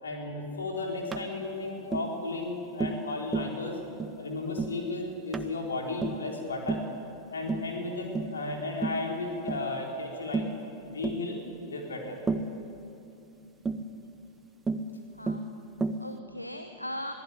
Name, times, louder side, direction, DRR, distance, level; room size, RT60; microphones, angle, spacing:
voice 1, 0.0-3.8 4.2-6.8 7.3-10.5 10.9-11.4 11.7-12.2, left 2 dB, 70° left, 0 dB, 4.1 m, -34 dB
Tap, 1.1-1.3 1.9-2.1 2.8-3.0 3.3-3.6 4.0-4.2 4.6-4.8 5.3-5.5 6.0-6.3 6.7-6.9 7.5-7.7 8.1-8.4 8.8-9.0 9.5-9.7 10.3-10.6 11.0-11.2 12.3-12.5 13.6-13.9 14.7-14.9 15.3-15.5 15.8-16.1, right 3 dB, 15° right, 1.1 m, -31 dB
voice 2, 15.2-17.1, equal, 90° left, 7 dB, 1.0 m, -40 dB
22.5 x 15.5 x 9.7 m, 2.7 s
figure-of-eight pair, 90°, 0 cm